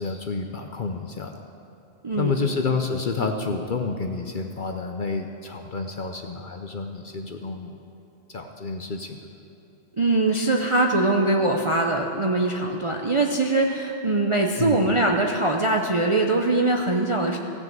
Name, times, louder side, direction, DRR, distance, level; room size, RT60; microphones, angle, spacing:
voice 1, 0.0-1.3 2.2-7.7 8.3-9.2 14.6-14.8, left 4 dB, 50° left, 5 dB, 0.7 m, -29 dB
voice 2, 2.0-2.5 10.0-17.4, right 2 dB, 40° right, 1 dB, 0.5 m, -22 dB
16.5 x 6.3 x 7.3 m, 2.8 s
omnidirectional pair, 1.3 m